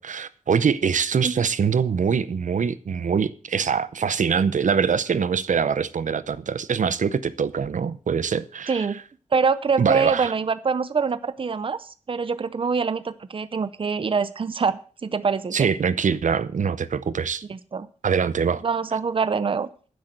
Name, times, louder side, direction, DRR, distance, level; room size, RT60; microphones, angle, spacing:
voice 1, 0.0-8.9 9.8-10.3 15.5-17.4 18.0-18.6, right 6 dB, 80° right, 0.7 m, -23 dB
voice 2, 8.7-9.0 9.3-15.7 17.5-17.9 18.6-19.7, right 5 dB, 45° right, 0.6 m, -25 dB
9.9 x 7.9 x 7.9 m
wide cardioid pair, 130°, 13 cm